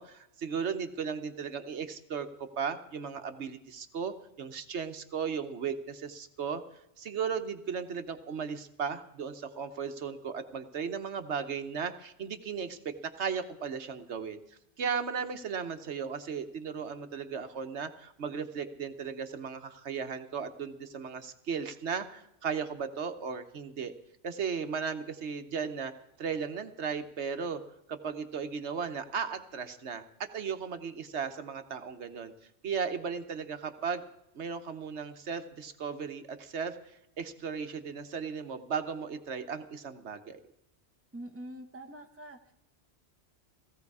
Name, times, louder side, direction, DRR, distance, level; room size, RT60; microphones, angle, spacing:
voice 1, 0.0-6.6 7.0-14.4 14.8-23.9 24.2-25.9 26.2-27.6 27.9-32.3 32.6-34.0 34.3-40.4, right 6 dB, 75° right, 8 dB, 1.3 m, -36 dB
voice 2, 41.1-42.5, right 1 dB, 10° right, 5 dB, 1.2 m, -44 dB
17.0 x 15.5 x 4.8 m, 0.79 s
omnidirectional pair, 1.2 m